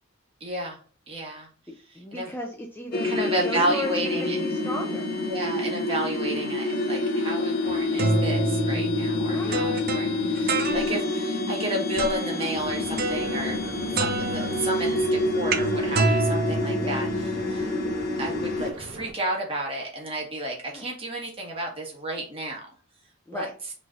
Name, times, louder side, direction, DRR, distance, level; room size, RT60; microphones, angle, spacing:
voice 1, 0.4-0.8 1.1-1.5 1.9-2.3 3.0-4.4 5.2-13.6 13.9-15.1 15.3-17.1 17.5-17.8 18.2-22.6 23.3-23.5, right 1 dB, 30° right, -1 dB, 1.5 m, -31 dB
voice 2, 2.0-5.0 9.3-9.8 16.8-17.0 17.6-17.9 20.7-20.9 23.3-23.5, left 1 dB, 10° left, 2 dB, 0.5 m, -35 dB
sound 1, 2.9-18.7, left 2 dB, 50° left, 0.8 m, -27 dB
sound 2, 7.7-11.3 12.0-12.4 13.0-13.7 14.0-17.5, right 3 dB, 50° right, 0.7 m, -28 dB
sound 3, 12.5-19.1, right 1 dB, 80° right, 1.3 m, -41 dB
5.9 x 3.3 x 2.5 m, 0.40 s
head